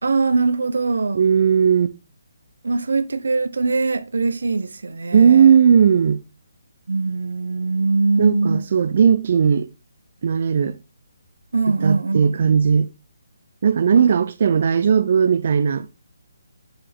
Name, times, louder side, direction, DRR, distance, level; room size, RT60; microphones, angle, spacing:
voice 1, 0.0-1.3 2.6-5.6 6.9-8.6 11.5-12.5 13.9-14.1, right 3 dB, 85° right, 0.9 m, -22 dB
voice 2, 1.1-1.9 5.1-6.2 8.2-9.7 10.2-10.8 11.7-12.9 13.6-15.9, right 7 dB, 40° right, 0.4 m, -16 dB
7.4 x 4.9 x 3.5 m
hypercardioid pair, 175°, 0 cm